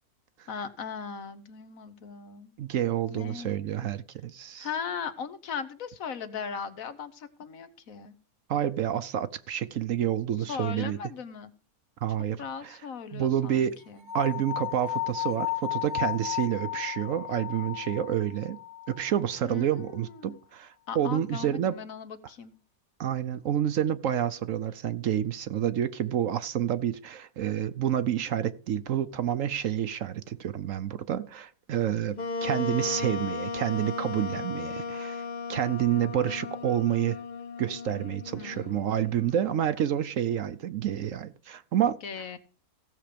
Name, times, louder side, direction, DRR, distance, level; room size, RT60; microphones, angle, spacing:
voice 1, 0.5-2.5 3.1-4.0 4.6-8.1 10.5-11.5 12.4-14.1 19.4-20.4 20.9-22.5 38.3-38.8 42.0-42.4, left 6 dB, 65° left, 1.4 m, -38 dB
voice 2, 2.6-4.7 8.5-11.0 12.0-12.4 12.6-12.8 13.1-13.8 14.1-18.6 18.9-21.8 23.0-37.2 37.6-42.0, right 10 dB, 65° right, 1.0 m, -29 dB
sound 1, 14.1-19.2, left 13 dB, 80° right, 1.6 m, -34 dB
Wind instrument woodwind instrument, 32.2-39.6, left 4 dB, 45° left, 0.6 m, -36 dB
16.0 x 6.8 x 5.1 m
omnidirectional pair, 1.6 m